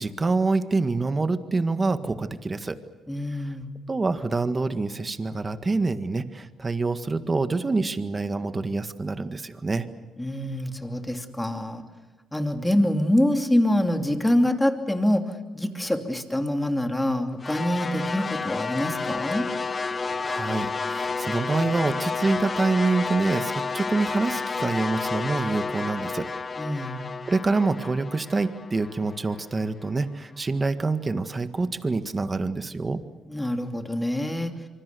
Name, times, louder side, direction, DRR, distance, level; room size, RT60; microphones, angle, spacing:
voice 1, 0.0-2.8 3.9-9.9 20.1-26.3 27.2-33.0, right 3 dB, 25° right, 10 dB, 1.7 m, -26 dB
voice 2, 3.1-3.7 10.2-11.8 12.3-15.2 15.5-19.4 26.6-27.0 33.3-34.5, left 1 dB, 10° left, 5 dB, 2.8 m, -25 dB
sound 1, 17.4-29.7, left 4 dB, 30° left, 1.0 m, -31 dB
25.5 x 24.0 x 7.0 m, 1.4 s
cardioid pair, 90°, 0 cm